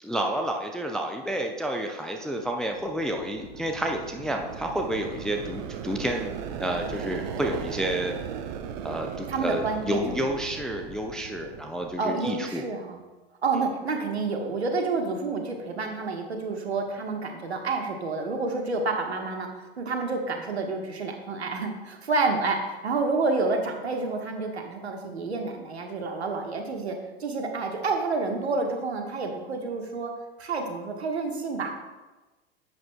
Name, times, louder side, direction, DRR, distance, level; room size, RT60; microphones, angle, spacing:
voice 1, 0.0-6.3 6.6-8.2 8.8-12.6, right 1 dB, ahead, 3 dB, 0.3 m, -30 dB
sound 1, 2.5-12.3, right 8 dB, 45° right, 0.8 m, -38 dB
voice 2, 9.3-10.3 12.0-13.0 13.4-19.5 19.8-30.1 30.4-31.7, right 3 dB, 75° right, 3 dB, 1.3 m, -29 dB
10.5 x 7.9 x 2.2 m, 1.2 s
figure-of-eight pair, 90°, 32 cm